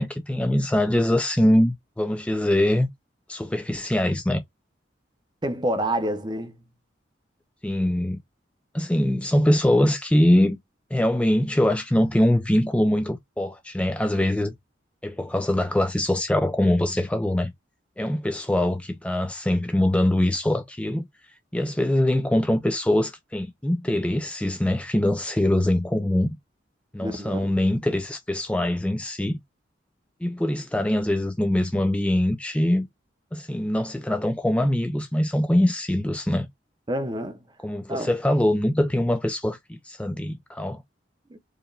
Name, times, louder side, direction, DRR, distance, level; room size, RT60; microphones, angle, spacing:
voice 1, 0.0-2.9 3.3-4.4 7.6-8.2 8.7-10.6 10.9-14.5 15.0-17.5 18.0-21.1 21.5-26.4 26.9-29.4 30.2-32.9 33.3-36.5 37.6-40.8, left 1 dB, 5° left, 0.3 m, -23 dB
voice 2, 5.4-6.6 27.0-27.5 36.9-37.4 37.9-38.1 41.3-41.4, right 1 dB, 25° right, 0.7 m, -28 dB
4.6 x 3.1 x 2.3 m
head